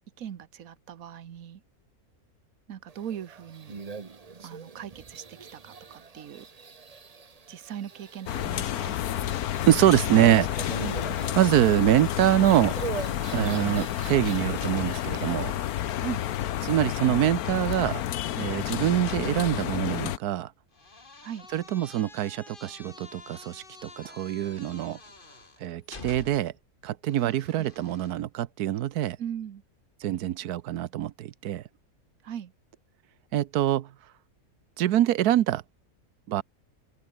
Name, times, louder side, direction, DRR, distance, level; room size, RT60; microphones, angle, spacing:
voice 1, 0.2-1.6 2.7-3.7 4.4-6.5 7.5-9.0 10.8-11.2 13.4-13.8 16.0-16.2 21.2-21.5 29.2-29.6 32.2-32.5, right 9 dB, 65° right, 1.5 m, -39 dB
sound 1, 2.9-16.4, right 5 dB, 30° right, 0.9 m, -43 dB
sound 2, 8.3-20.2, left 12 dB, 80° left, 1.2 m, -30 dB
voice 2, 9.7-10.8 11.4-12.7 13.3-15.5 16.6-18.0 18.4-20.5 21.5-25.0 25.6-26.5 26.8-29.2 30.0-31.6 33.3-33.9 34.8-35.6 36.3-36.4, right 12 dB, 85° right, 1.3 m, -24 dB
sound 3, 14.6-15.3 15.6-19.8 20.8-26.6 27.1-28.1, left 3 dB, 35° left, 2.3 m, -47 dB
open air
omnidirectional pair, 1.6 m